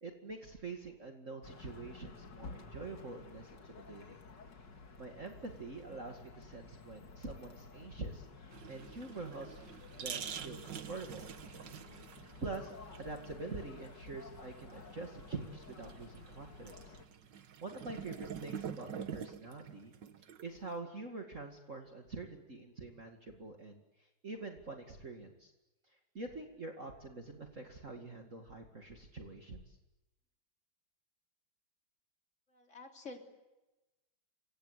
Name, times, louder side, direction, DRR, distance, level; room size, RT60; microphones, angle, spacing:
voice 1, 0.0-4.2 5.0-8.3 8.7-9.6 10.0-11.3 12.4-16.9 17.4-19.9 20.4-25.5 25.9-29.8, right 3 dB, 35° right, 3 dB, 2.5 m, -45 dB
sound 1, 1.4-17.1, left 4 dB, 55° left, 2.8 m, -53 dB
sound 2, 8.5-20.7, right 8 dB, 60° right, 1.9 m, -47 dB
voice 2, 32.5-33.2, left 3 dB, 35° left, 3 dB, 4.0 m, -49 dB
29.0 x 24.5 x 8.3 m, 1.0 s
omnidirectional pair, 2.3 m